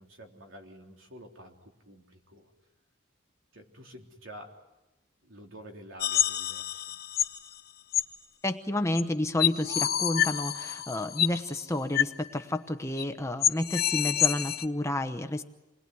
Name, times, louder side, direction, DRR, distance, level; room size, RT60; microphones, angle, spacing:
voice 1, 0.0-2.5 3.5-4.6 5.2-7.0, equal, 75° right, 1 dB, 3.6 m, -49 dB
sound 1, 6.0-7.4 7.9-8.0 9.0-9.1 9.4-11.4 11.9-12.1 12.4-12.5 13.0-13.1 13.4-14.7, left 10 dB, 50° left, 0.8 m, -27 dB
voice 2, 8.4-15.4, left 1 dB, 15° left, 7 dB, 0.9 m, -30 dB
28.0 x 21.0 x 9.5 m, 1.0 s
head